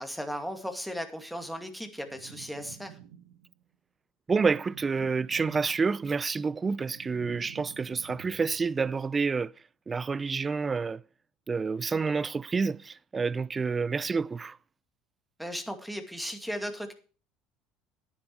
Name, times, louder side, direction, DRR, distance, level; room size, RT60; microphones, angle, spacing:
voice 1, 0.0-3.0 15.4-16.9, equal, ahead, 2.3 m, -36 dB
Ominous Rumbling, 2.0-3.6 4.6-6.1 6.5-8.8, right 10 dB, 80° right, 1.4 m, -50 dB
voice 2, 4.3-9.5 9.9-11.0 11.5-14.6, right 4 dB, 25° right, 0.4 m, -28 dB
10.0 x 10.0 x 4.7 m
hypercardioid pair, 80°, 0 cm